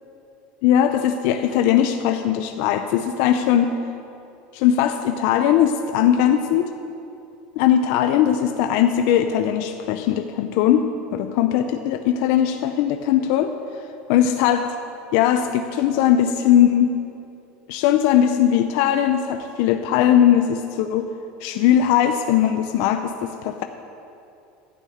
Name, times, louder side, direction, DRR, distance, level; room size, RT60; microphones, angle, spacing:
voice 1, 0.6-3.8 4.5-6.7 7.6-10.9 11.1-13.5 14.1-14.7 15.1-17.0 17.7-21.1 21.4-23.6, left 10 dB, 60° left, 7 dB, 0.5 m, -19 dB
12.0 x 6.4 x 9.1 m, 2.7 s
cardioid pair, 160°, 4 cm